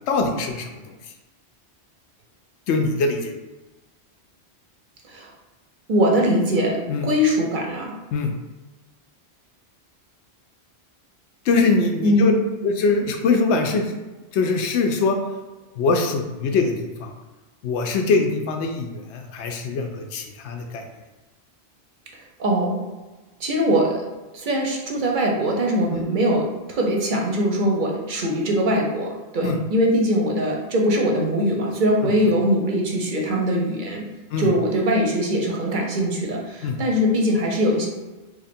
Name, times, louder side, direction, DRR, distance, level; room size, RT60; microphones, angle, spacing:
voice 1, 0.1-0.7 2.7-3.3 6.9-7.1 8.1-8.3 11.5-12.3 12.6-14.0 14.3-15.2 15.8-17.1 17.6-20.8 25.9-26.0 29.4-29.6 34.3-34.5 36.6-36.8, left 4 dB, 90° left, 4 dB, 0.9 m, -22 dB
voice 2, 5.9-7.9 12.0-12.3 22.4-22.8 23.4-24.1 24.3-34.0 34.4-37.9, equal, 55° right, 0 dB, 0.7 m, -21 dB
2.9 x 2.5 x 4.2 m, 1.2 s
omnidirectional pair, 1.1 m